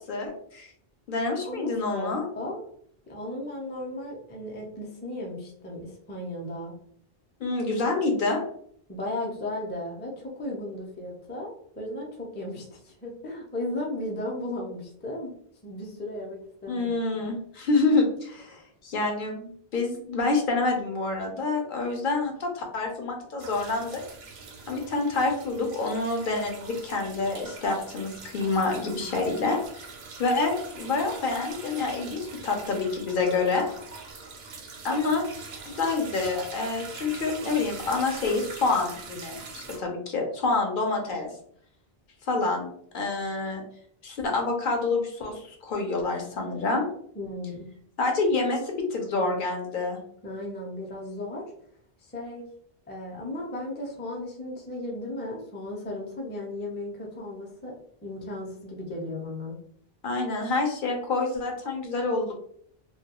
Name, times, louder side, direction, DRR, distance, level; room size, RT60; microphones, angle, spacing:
voice 1, 0.1-0.7 1.1-2.2 7.4-8.4 16.7-24.0 24.7-29.6 30.2-33.7 34.8-35.2 35.6-41.3 42.3-42.7 42.9-43.6 44.0-46.8 48.0-50.0 60.0-62.3, left 3 dB, 65° left, 2 dB, 0.7 m, -27 dB
voice 2, 1.4-2.6 3.1-6.7 8.9-15.3 15.6-17.2 47.2-47.7 50.2-51.4 52.0-52.5 52.9-57.7 58.0-59.6, left 1 dB, 20° left, -1 dB, 0.3 m, -35 dB
sound 1, 23.4-39.8, right 4 dB, 85° right, 0.8 m, -43 dB
2.2 x 2.2 x 2.8 m, 0.63 s
omnidirectional pair, 1.0 m